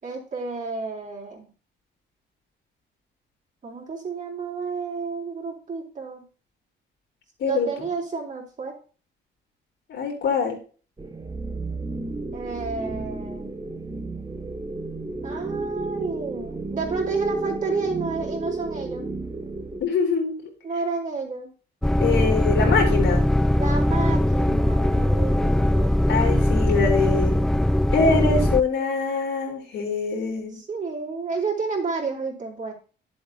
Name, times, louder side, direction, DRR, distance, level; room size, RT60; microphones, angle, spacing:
voice 1, 0.0-1.5 3.6-6.2 7.4-8.8 12.3-13.5 15.2-19.1 20.6-21.5 23.6-26.1 30.5-32.7, right 4 dB, 40° right, -3 dB, 4.0 m, -30 dB
voice 2, 9.9-10.6 19.8-20.3 22.0-23.2 26.1-27.3 27.9-30.6, left 4 dB, 75° left, 0 dB, 4.1 m, -24 dB
sound 1, 11.0-19.8, right 2 dB, 20° right, 1.1 m, -32 dB
sound 2, 21.8-28.6, left 1 dB, ahead, 0.3 m, -20 dB
10.5 x 7.9 x 2.9 m, 0.39 s
cardioid pair, 90°, 20 cm